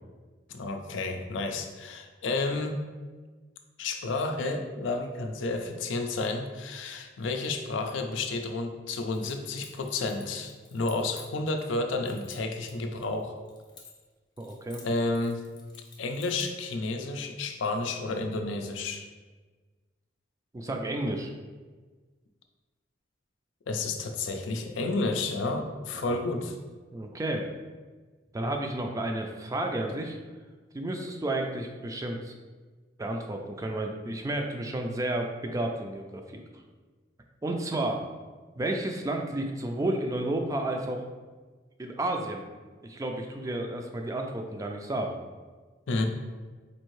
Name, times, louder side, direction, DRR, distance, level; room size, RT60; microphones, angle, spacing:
voice 1, 0.5-2.8 3.8-13.4 14.8-15.4 16.0-19.1 23.7-26.6 45.9-46.0, left 3 dB, 90° left, 5 dB, 0.4 m, -31 dB
Keys jangling, 8.9-11.7 12.0-14.1 14.4-16.6, left 4 dB, 25° left, 0.6 m, -52 dB
voice 2, 14.4-14.8 20.5-21.3 25.9-26.2 26.9-27.4 28.3-30.2 30.7-32.3 33.0-36.4 37.4-38.0 38.6-41.0 41.8-42.4 42.8-45.2, right 1 dB, 20° right, 3 dB, 0.3 m, -31 dB
4.3 x 2.6 x 3.1 m, 1.4 s
head